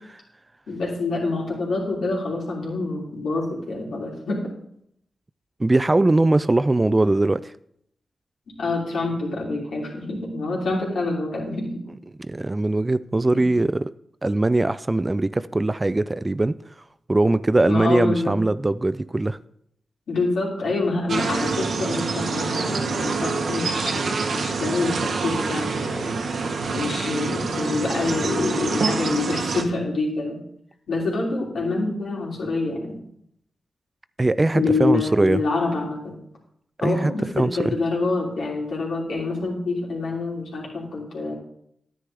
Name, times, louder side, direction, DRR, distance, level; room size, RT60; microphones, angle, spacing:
voice 1, 0.7-4.5 8.6-11.7 17.7-18.4 20.1-26.1 26.7-30.4 30.9-33.0 34.5-36.2 36.8-41.3, left 3 dB, 80° left, -2 dB, 3.1 m, -26 dB
voice 2, 5.6-7.5 12.2-13.9 14.2-16.5 17.1-19.4 34.2-35.4 36.8-37.5, right 2 dB, 30° right, 15 dB, 0.4 m, -21 dB
sound 1, 21.1-29.6, right 4 dB, 75° right, 0.9 m, -26 dB
9.8 x 9.3 x 3.4 m, 0.70 s
cardioid pair, 50°, 0 cm